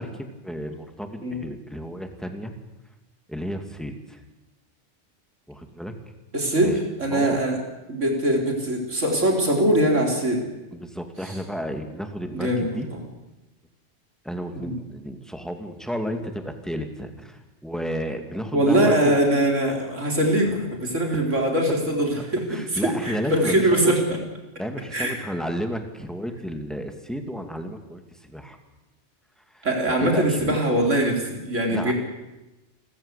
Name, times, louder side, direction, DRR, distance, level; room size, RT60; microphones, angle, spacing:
voice 1, 0.0-2.5 3.3-4.2 5.5-5.9 6.6-6.8 7.1-7.4 10.7-12.9 14.2-19.2 22.5-23.9 24.6-28.6 29.5-30.6 31.7-31.9, equal, ahead, 5 dB, 2.3 m, -32 dB
voice 2, 6.3-7.6 7.9-10.4 11.3-11.4 12.3-13.0 14.5-14.7 18.5-24.2 24.9-25.2 29.6-31.9, right 1 dB, 85° right, 2 dB, 4.5 m, -22 dB
28.5 x 14.5 x 8.3 m, 1.0 s
omnidirectional pair, 1.2 m